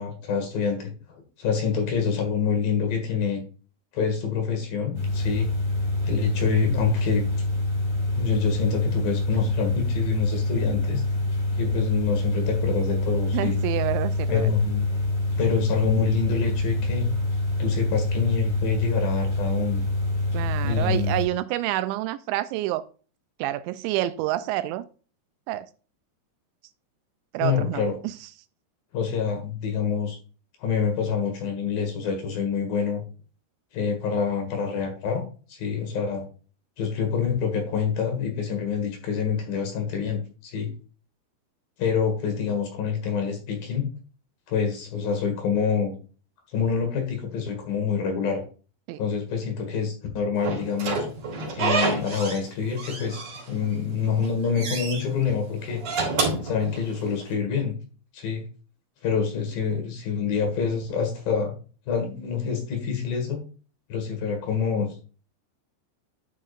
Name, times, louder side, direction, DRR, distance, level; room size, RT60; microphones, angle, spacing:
voice 1, 0.0-3.4 3.9-5.5 6.0-7.3 8.1-11.0 11.6-13.6 14.3-14.9 15.4-17.1 17.6-19.8 20.6-21.1 27.4-27.9 28.9-30.2 30.6-33.0 33.7-35.2 35.5-36.2 36.8-40.7 41.8-43.9 44.5-45.9 46.5-48.4 49.0-51.1 51.5-55.8 56.4-57.7 58.1-58.4 59.0-61.5 61.9-63.4 63.9-65.0, left 6 dB, 60° left, 3.0 m, -26 dB
sound 1, 4.9-21.3, left 2 dB, 80° left, 0.6 m, -26 dB
voice 2, 13.3-14.5 20.3-22.8 23.4-24.9 25.5-25.7 27.3-28.2 48.9-49.0, right 15 dB, 85° right, 2.7 m, -28 dB
Slam / Squeak, 50.4-52.5 52.8-53.7 54.1-55.0 55.7-57.2, right 4 dB, 45° right, 4.3 m, -28 dB
12.0 x 5.9 x 2.5 m
omnidirectional pair, 5.3 m